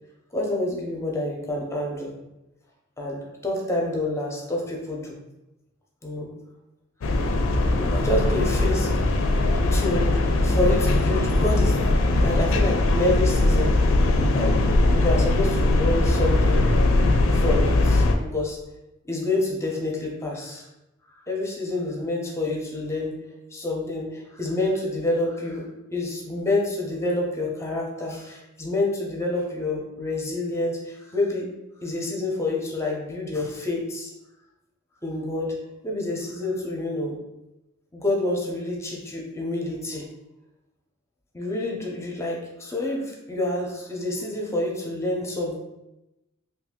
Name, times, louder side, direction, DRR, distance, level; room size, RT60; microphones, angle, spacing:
voice 1, 0.3-2.1 3.0-5.2 6.0-6.3 7.8-9.3 9.7-11.8 12.2-13.7 14.3-14.6 14.9-16.6 17.3-18.6 19.0-20.7 21.1-23.2 23.5-31.5 31.8-34.1 35.0-35.6 35.8-37.2 37.9-40.1 41.3-45.6, left 2 dB, 15° left, -1 dB, 0.6 m, -28 dB
sound 1, 7.0-18.1, left 2 dB, 75° left, 0.4 m, -20 dB
2.8 x 2.6 x 3.6 m, 0.94 s
head